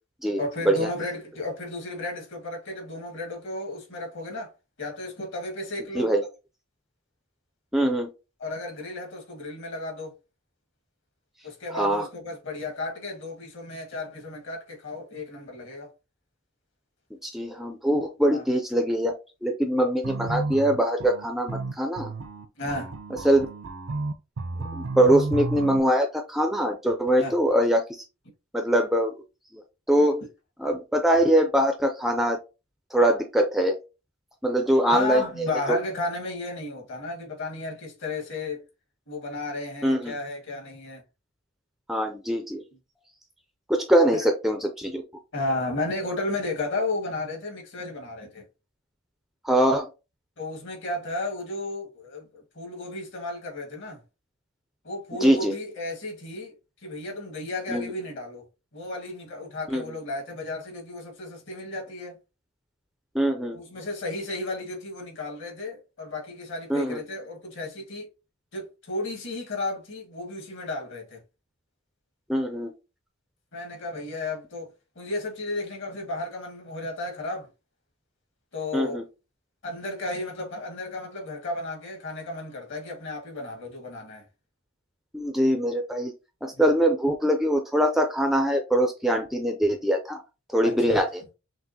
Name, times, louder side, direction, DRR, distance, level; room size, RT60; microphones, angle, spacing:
voice 1, 0.4-4.5 4.8-6.1 8.4-10.1 11.4-15.9 18.3-18.4 22.6-22.9 27.2-27.4 34.9-38.6 39.1-41.0 44.1-44.2 45.3-48.4 50.4-54.0 54.8-56.5 56.8-58.4 58.7-62.2 63.5-68.1 68.5-71.2 73.5-74.7 74.9-77.5 78.5-79.0 79.6-84.2 86.5-86.6 90.6-91.0, left 2 dB, 55° left, 1.8 m, -33 dB
voice 2, 7.7-8.1 11.7-12.1 17.2-19.1 19.4-22.1 23.2-23.5 24.7-27.8 28.5-29.1 29.9-30.2 30.6-32.4 32.9-33.8 34.4-35.2 35.7-35.8 39.8-40.1 41.9-42.6 43.7-45.0 49.4-49.9 55.2-55.5 57.7-57.9 59.7-59.8 63.1-63.6 66.7-67.0 72.3-72.7 78.7-79.0 85.1-86.1 86.4-90.2 90.5-91.2, right 1 dB, ahead, 0.4 m, -23 dB
sound 1, 20.0-25.8, right 3 dB, 60° right, 0.5 m, -32 dB
6.0 x 2.5 x 2.8 m
head